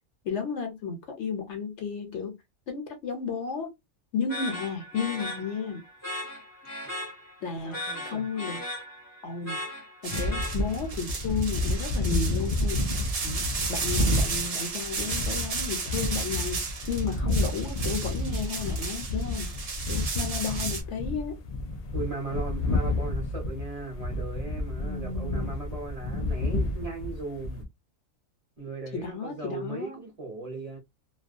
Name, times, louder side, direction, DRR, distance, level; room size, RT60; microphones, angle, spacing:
voice 1, 0.2-2.4 2.7-3.7 4.1-5.8 7.4-7.8 8.0-8.6 9.2-9.6 10.0-12.9 13.2-13.4 13.7-19.5 19.9-21.4 24.8-25.5 28.9-30.0, left 5 dB, 65° left, 0.9 m, -33 dB
sound 1, 4.3-11.0, left 1 dB, 15° left, 0.6 m, -38 dB
voice 2, 7.6-8.3 21.9-27.7 28.6-30.8, right 3 dB, 35° right, 0.9 m, -37 dB
sound 2, 10.0-20.8, right 4 dB, 80° right, 0.3 m, -34 dB
sound 3, 10.1-27.6, left 1 dB, 85° left, 0.3 m, -30 dB
2.3 x 2.2 x 2.5 m
omnidirectional pair, 1.3 m